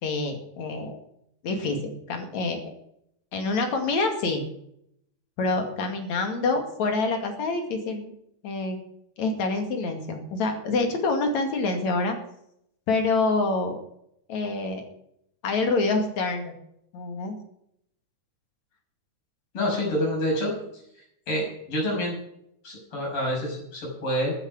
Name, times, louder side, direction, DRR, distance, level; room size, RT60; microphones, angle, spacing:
voice 1, 0.0-1.0 1.4-2.7 3.3-4.4 5.4-8.1 8.4-8.8 9.2-12.2 12.9-13.8 14.3-14.8 15.4-16.5 16.9-17.4, left 3 dB, 70° left, 4 dB, 3.6 m, -26 dB
voice 2, 19.5-20.5 21.3-22.2 22.6-24.3, equal, 45° left, -3 dB, 7.4 m, -27 dB
13.5 x 9.8 x 6.5 m, 0.74 s
omnidirectional pair, 3.4 m